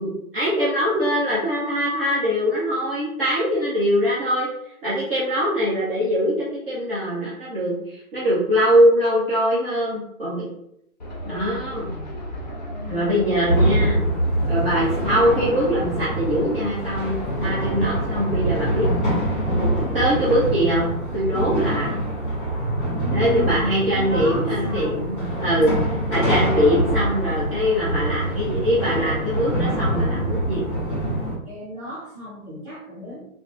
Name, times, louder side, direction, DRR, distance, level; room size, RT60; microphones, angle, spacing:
voice 1, 0.0-4.5 4.8-10.5 11.3-12.0 12.9-14.0 14.4-18.9 19.9-22.0 23.1-25.8 26.1-30.7, equal, 40° right, -8 dB, 0.9 m, -22 dB
sound 1, 11.0-20.1, equal, 30° left, 0.4 m, -35 dB
voice 2, 12.8-14.0 23.0-25.3 26.2-27.5 29.6-30.1 31.4-33.3, left 1 dB, 5° right, -15 dB, 1.5 m, -37 dB
sound 2, 13.5-31.4, right 1 dB, 15° left, 1.1 m, -24 dB
3.4 x 2.1 x 2.8 m, 0.75 s
hypercardioid pair, 150°, 44 cm